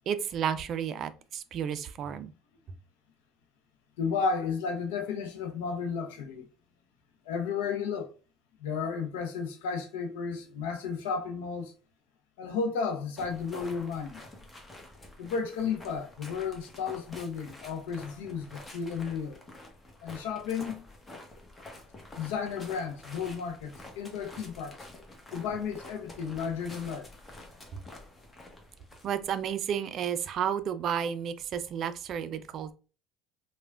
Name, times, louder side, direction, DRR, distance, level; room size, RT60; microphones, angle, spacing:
voice 1, 0.1-2.3 27.7-27.8 29.0-32.7, right 8 dB, 55° right, 0.3 m, -32 dB
voice 2, 4.0-6.5 7.3-8.1 8.6-11.7 12.4-14.2 15.2-19.4 20.0-20.8 22.2-24.9 25.3-27.1, left 5 dB, 85° left, 0.5 m, -33 dB
sound 1, 13.2-29.5, left 1 dB, 20° left, 0.9 m, -49 dB
3.2 x 2.1 x 2.3 m
supercardioid pair, 80°, 0 cm